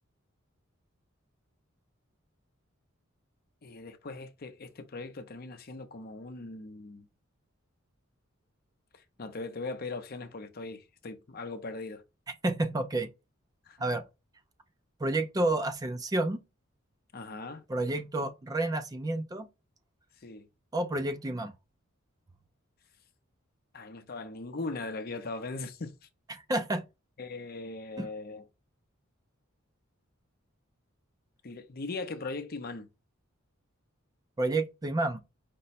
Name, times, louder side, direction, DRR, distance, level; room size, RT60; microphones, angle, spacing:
voice 1, 3.6-7.1 8.9-12.0 13.7-13.9 17.1-17.6 20.2-20.5 23.7-25.9 27.2-28.4 31.4-32.9, left 3 dB, 45° left, 0.6 m, -39 dB
voice 2, 12.4-13.1 13.8-14.0 15.0-16.4 17.7-19.5 20.7-21.5 26.3-26.8 28.0-28.1 34.4-35.2, right 2 dB, 20° right, 0.4 m, -30 dB
5.2 x 2.2 x 4.1 m
head